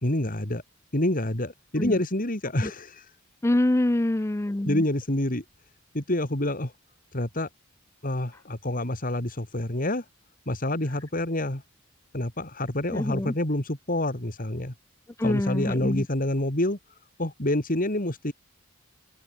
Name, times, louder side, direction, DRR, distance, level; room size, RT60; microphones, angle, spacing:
voice 1, 0.0-0.6 0.9-3.0 4.7-5.4 5.9-6.7 7.1-7.5 8.0-10.0 10.5-11.6 12.1-14.7 15.2-16.8 17.2-18.3, left 1 dB, 45° left, 3.5 m, -27 dB
voice 2, 3.4-4.8 12.9-13.3 15.2-16.1, left 1 dB, 15° left, 0.5 m, -25 dB
head